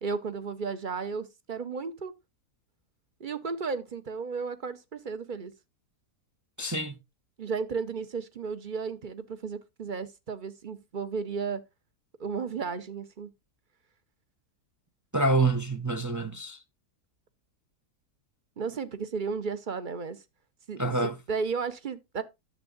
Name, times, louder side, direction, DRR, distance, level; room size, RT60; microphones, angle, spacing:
voice 1, 0.0-2.1 3.2-5.5 7.4-11.6 12.2-13.3 18.6-20.2 20.7-22.2, right 5 dB, 40° right, 0.8 m, -34 dB
voice 2, 6.6-6.9 15.1-16.6 20.8-21.2, right 2 dB, 20° right, 0.5 m, -26 dB
10.5 x 7.4 x 3.8 m
omnidirectional pair, 1.7 m